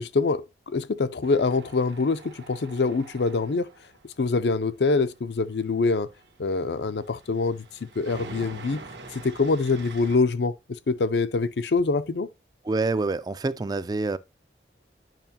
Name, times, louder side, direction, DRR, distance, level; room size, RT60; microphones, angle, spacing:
voice 1, 0.0-3.7 4.2-6.1 6.4-7.6 8.0-8.8 9.1-10.6 10.9-12.3, left 3 dB, 75° left, 0.5 m, -25 dB
Tools, 1.2-10.2, right 3 dB, 80° right, 1.3 m, -46 dB
voice 2, 12.6-14.2, right 3 dB, 20° right, 0.3 m, -26 dB
9.2 x 5.7 x 2.8 m
head